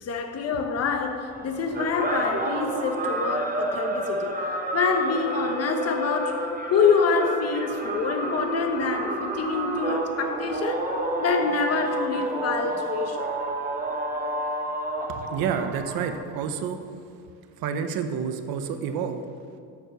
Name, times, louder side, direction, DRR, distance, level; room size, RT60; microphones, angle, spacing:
voice 1, 0.0-4.4 4.7-10.9 11.2-13.3, left 5 dB, 40° left, 5 dB, 1.1 m, -26 dB
sound 1, 1.3-16.2, right 1 dB, 25° right, 1.2 m, -29 dB
voice 2, 15.1-16.8 17.6-19.2, right 7 dB, 75° right, 7 dB, 0.9 m, -29 dB
13.0 x 4.6 x 6.7 m, 2.3 s
cardioid pair, 125°, 36 cm